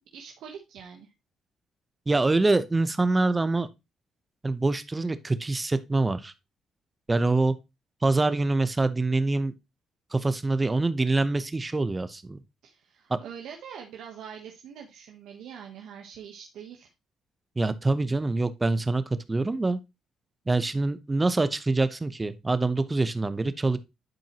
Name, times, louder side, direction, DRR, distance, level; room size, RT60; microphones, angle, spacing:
voice 1, 0.1-1.1 12.6-16.9, right 8 dB, 80° right, 1.1 m, -44 dB
voice 2, 2.1-3.7 4.4-6.3 7.1-7.5 8.0-9.5 10.1-12.4 17.6-19.0 19.3-19.8 20.5-23.8, right 2 dB, 20° right, 0.8 m, -25 dB
10.5 x 4.5 x 2.9 m
cardioid pair, 90°, 0 cm